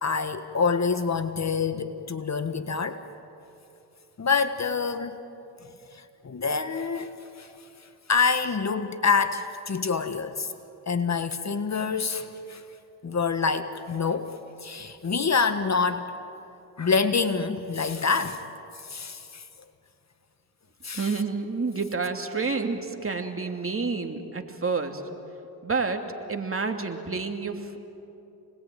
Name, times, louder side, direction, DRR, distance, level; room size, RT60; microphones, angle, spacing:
voice 1, 0.0-3.0 4.2-5.2 5.9-7.5 8.1-10.5 10.9-12.6 13.0-14.3 14.6-16.1 16.8-18.4 18.8-19.4 20.8-21.1, left 5 dB, 40° left, 1.6 m, -26 dB
voice 2, 20.9-25.0 25.6-26.0 26.3-27.8, right 4 dB, 30° right, 2.8 m, -29 dB
29.0 x 20.5 x 9.3 m
supercardioid pair, 60°, 41 cm